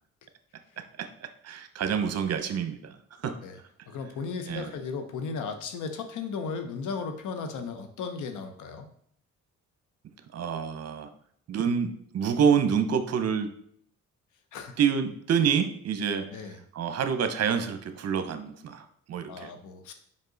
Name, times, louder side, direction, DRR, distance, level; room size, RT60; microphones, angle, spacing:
voice 1, 0.8-3.4 4.5-4.7 10.3-11.1 11.5-13.5 14.8-16.4 16.7-19.5, right 7 dB, 55° right, 9 dB, 0.9 m, -27 dB
voice 2, 3.9-8.9 14.5-14.7 16.3-16.6 19.3-19.9, left 5 dB, 80° left, 7 dB, 0.9 m, -35 dB
5.4 x 5.3 x 3.9 m, 0.63 s
cardioid pair, 90°, 30 cm